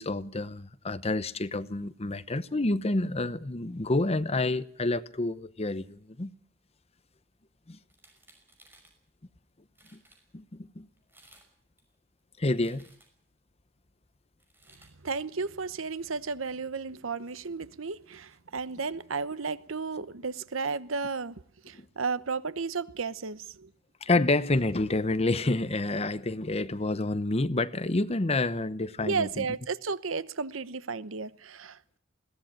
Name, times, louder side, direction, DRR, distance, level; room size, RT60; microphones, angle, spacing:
voice 1, 0.0-6.3 7.7-7.8 10.3-10.9 12.4-12.9 24.0-29.5, left 2 dB, 30° left, 0.9 m, -28 dB
sound 1, 7.9-9.0 9.5-9.6 9.7-10.2 11.0-11.5 11.8-13.3 14.4-14.9, right 1 dB, 10° right, 5.6 m, -59 dB
voice 2, 15.0-23.7 29.0-32.0, right 4 dB, 85° right, 1.0 m, -33 dB
sound 2, 21.6-23.9 24.3-28.5, equal, 55° right, 5.1 m, -56 dB
21.5 x 17.5 x 8.9 m
head